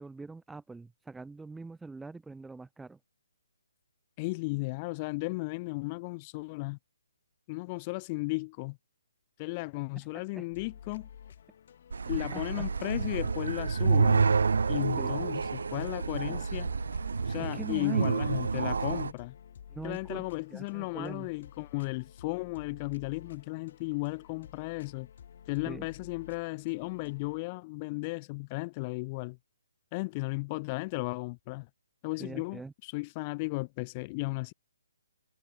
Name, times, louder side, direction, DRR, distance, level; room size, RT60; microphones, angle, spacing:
voice 1, 0.0-3.0 10.0-10.1 10.3-10.5 12.0-12.6 15.0-15.1 16.2-16.5 17.4-18.1 19.7-20.2 20.5-21.3 25.7-25.9 32.2-32.7, right 3 dB, 5° right, 0.8 m, -43 dB
voice 2, 4.2-6.8 7.5-8.8 9.4-11.1 12.1-14.3 14.7-16.7 17.3-19.3 19.8-25.1 25.5-29.4 29.9-31.7 32.0-34.5, left 26 dB, 15° left, 0.4 m, -35 dB
sound 1, 10.5-27.4, left 8 dB, 35° left, 4.7 m, -52 dB
sound 2, 11.9-19.1, right 5 dB, 70° right, 0.5 m, -29 dB
hypercardioid pair, 175°, 0 cm